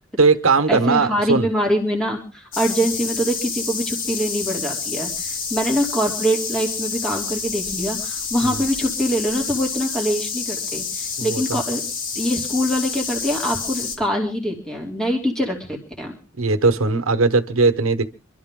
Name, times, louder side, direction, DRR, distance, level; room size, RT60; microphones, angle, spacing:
voice 1, 0.2-1.5 8.4-8.6 11.2-11.6 16.4-18.1, right 3 dB, 80° right, 7 dB, 1.2 m, -19 dB
voice 2, 0.7-11.8 12.1-16.1, equal, 5° left, 0 dB, 2.7 m, -24 dB
sound 1, 2.5-14.0, left 5 dB, 65° left, 4.6 m, -28 dB
25.0 x 13.0 x 3.8 m, 0.36 s
head